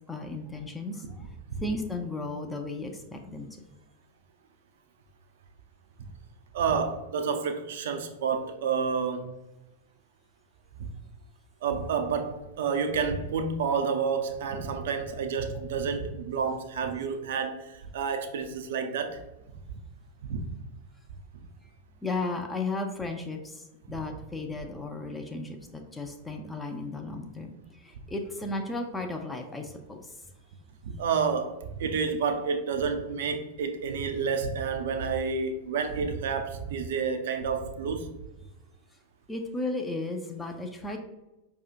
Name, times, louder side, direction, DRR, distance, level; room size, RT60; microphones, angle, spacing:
voice 1, 0.1-1.4 1.6-3.5 21.6-21.7 22.0-30.2 39.3-41.0, left 2 dB, 10° left, 0.4 m, -35 dB
voice 2, 6.5-9.4 10.8-10.9 11.6-19.2 20.2-20.4 30.8-38.1, right 5 dB, 60° right, 0.4 m, -29 dB
4.8 x 2.7 x 2.4 m
figure-of-eight pair, 90°, 0 cm